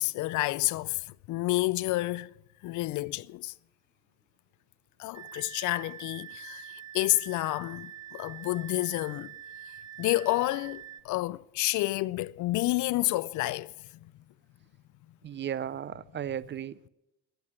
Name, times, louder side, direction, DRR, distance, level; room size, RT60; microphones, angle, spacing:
voice 1, 0.0-2.3 2.6-3.5 5.0-9.3 10.0-13.7, left 18 dB, 50° left, 0.4 m, -29 dB
sound 1, 5.1-11.0, right 10 dB, 10° right, 1.1 m, -45 dB
voice 2, 15.2-16.9, right 9 dB, 30° right, 0.5 m, -35 dB
10.5 x 10.5 x 9.8 m
supercardioid pair, 85°, 39 cm